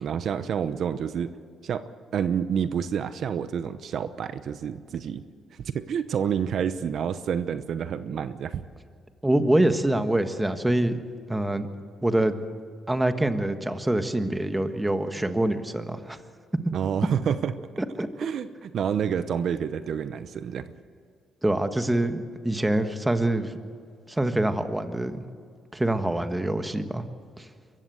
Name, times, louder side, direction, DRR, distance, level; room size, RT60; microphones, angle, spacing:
voice 1, 0.0-1.3 1.6-1.8 2.1-5.2 5.6-8.6 16.7-17.5 18.2-20.7, right 8 dB, 65° right, 12 dB, 0.8 m, -28 dB
voice 2, 9.2-11.0 11.3-11.7 12.0-12.4 12.9-16.2 18.0-18.1 21.4-23.5 24.1-25.2 25.7-27.0 27.4-27.5, right 1 dB, 10° right, 8 dB, 1.5 m, -25 dB
24.0 x 15.0 x 7.9 m, 2.1 s
cardioid pair, 90°, 0 cm